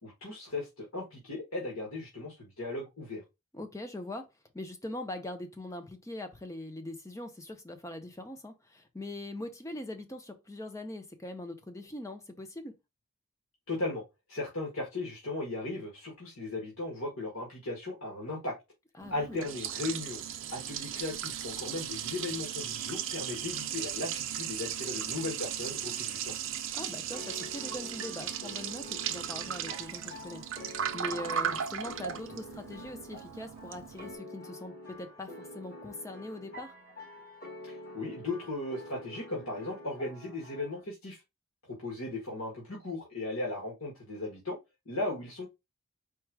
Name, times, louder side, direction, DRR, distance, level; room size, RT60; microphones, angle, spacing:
voice 1, 0.0-3.2 13.7-14.0 14.3-18.5 19.1-20.2 20.5-26.3 37.6-41.2 41.6-44.6 44.8-45.6, left 2 dB, 80° left, 1.7 m, -37 dB
voice 2, 3.5-4.3 4.5-12.7 19.0-19.4 26.7-36.7, left 1 dB, 15° left, 0.7 m, -42 dB
Liquid, 19.0-34.2, right 9 dB, 60° right, 0.5 m, -37 dB
sound 1, 27.1-40.8, left 1 dB, 45° left, 1.9 m, -47 dB
4.5 x 2.4 x 4.6 m
head